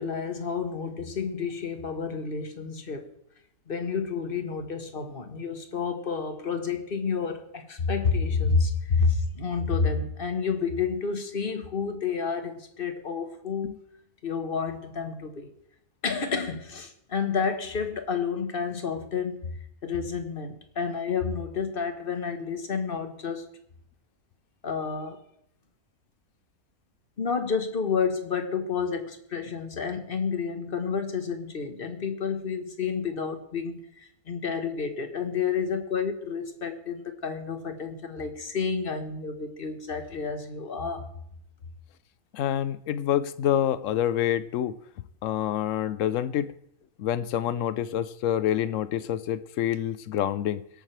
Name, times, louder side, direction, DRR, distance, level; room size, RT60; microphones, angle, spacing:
voice 1, 0.0-3.1 3.7-13.8 14.2-15.5 16.0-19.6 19.8-23.4 24.6-25.2 27.2-41.1, left 5 dB, 40° left, 1.3 m, -30 dB
voice 2, 42.3-44.7 45.2-46.5 47.0-50.6, left 10 dB, 65° left, 1.0 m, -27 dB
23.0 x 8.9 x 3.3 m
omnidirectional pair, 1.6 m